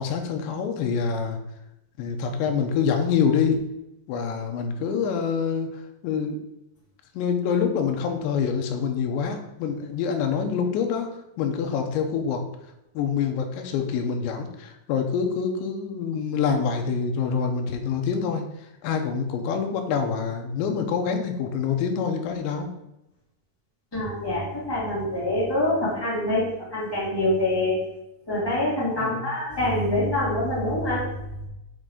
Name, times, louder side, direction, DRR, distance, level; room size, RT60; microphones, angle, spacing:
voice 1, 0.0-1.4 2.0-3.6 4.1-6.4 7.1-11.1 11.4-12.4 12.9-18.4 18.8-22.7 29.0-29.3, left 6 dB, 80° left, 4 dB, 2.9 m, -26 dB
voice 2, 23.9-27.8 28.3-31.0, left 1 dB, 30° left, -9 dB, 0.4 m, -25 dB
7.7 x 5.5 x 3.8 m, 0.88 s
omnidirectional pair, 5.6 m